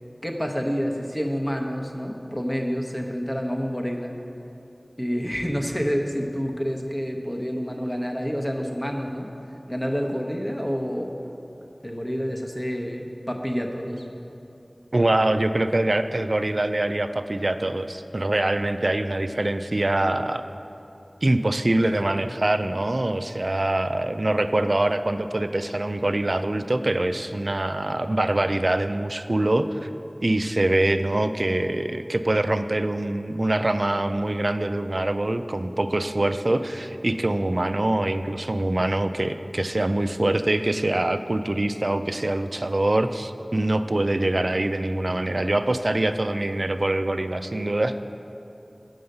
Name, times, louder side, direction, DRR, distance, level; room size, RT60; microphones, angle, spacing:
voice 1, 0.2-4.2 5.0-9.3 9.7-11.1 11.8-14.1, equal, 20° left, 2 dB, 0.9 m, -28 dB
voice 2, 14.9-20.4 21.2-29.9 30.2-48.0, right 1 dB, 60° right, 9 dB, 0.3 m, -24 dB
7.8 x 5.5 x 6.6 m, 2.8 s
wide cardioid pair, 40°, 0 cm